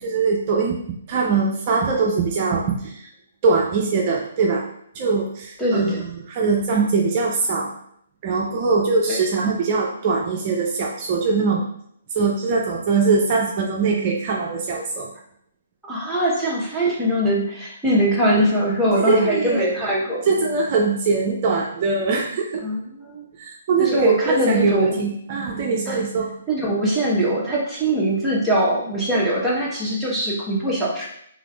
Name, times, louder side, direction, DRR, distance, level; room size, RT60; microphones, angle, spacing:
voice 1, 0.0-0.8 1.1-3.1 3.4-4.7 4.9-7.7 8.2-11.6 12.1-15.1 19.0-19.8 20.2-22.6 23.4-26.3, right 4 dB, 35° right, -1 dB, 0.6 m, -22 dB
voice 2, 5.6-6.0 9.1-9.2 15.8-20.3 22.6-23.2 23.8-25.0 25.9-26.0 26.5-31.1, right 1 dB, ahead, -7 dB, 1.1 m, -22 dB
5.0 x 3.3 x 2.4 m, 0.70 s
figure-of-eight pair, 135°, 0 cm